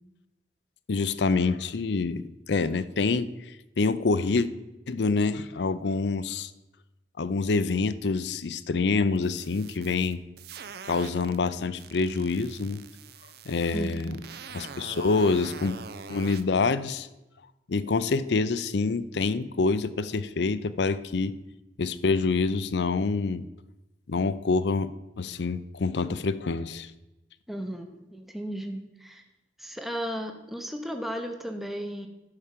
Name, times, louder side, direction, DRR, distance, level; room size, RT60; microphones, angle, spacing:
voice 1, 0.9-4.5 4.9-6.5 7.2-10.2 10.8-12.8 13.5-14.2 14.5-15.8 16.1-17.1 17.7-21.4 21.8-23.4 24.1-26.9, left 4 dB, 70° left, 14 dB, 0.5 m, -26 dB
sound 1, 9.2-11.4 11.8-16.4, right 6 dB, 60° right, 0.6 m, -44 dB
voice 2, 13.7-14.2 27.5-29.2 29.6-32.1, equal, ahead, 4 dB, 0.7 m, -35 dB
11.0 x 4.9 x 7.4 m, 0.97 s
head